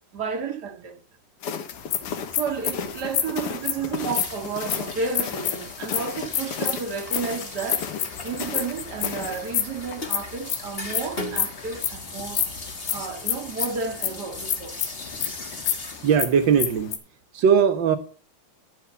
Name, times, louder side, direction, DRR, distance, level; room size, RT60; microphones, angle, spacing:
voice 1, 0.1-1.0 2.3-7.9 8.2-12.4 12.9-14.7, right 5 dB, 40° right, 1.6 m, -32 dB
sound 1, 1.4-9.5, left 7 dB, 60° left, 1.6 m, -35 dB
sound 2, 1.7-17.0, left 10 dB, 75° left, 2.9 m, -29 dB
sound 3, 3.9-16.2, left 2 dB, 30° left, 1.0 m, -39 dB
voice 2, 16.0-17.0 17.3-18.0, right 7 dB, 80° right, 1.0 m, -19 dB
12.5 x 6.2 x 6.9 m
omnidirectional pair, 3.6 m